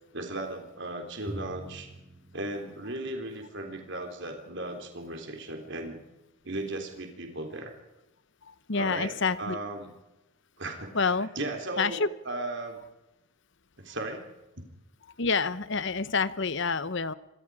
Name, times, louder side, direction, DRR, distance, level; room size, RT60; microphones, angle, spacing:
voice 1, 0.1-1.9 2.3-6.0 6.4-7.7 8.7-9.9 10.6-11.1 11.4-12.8 13.8-14.3 14.6-14.7, right 2 dB, 55° right, 4 dB, 3.6 m, -36 dB
Drum, 1.3-3.7, equal, 20° right, 3.9 m, -45 dB
voice 2, 8.4-9.6 10.9-11.3 11.8-12.1 15.2-17.1, left 4 dB, 55° left, 16 dB, 1.0 m, -28 dB
26.0 x 22.0 x 5.0 m, 0.95 s
head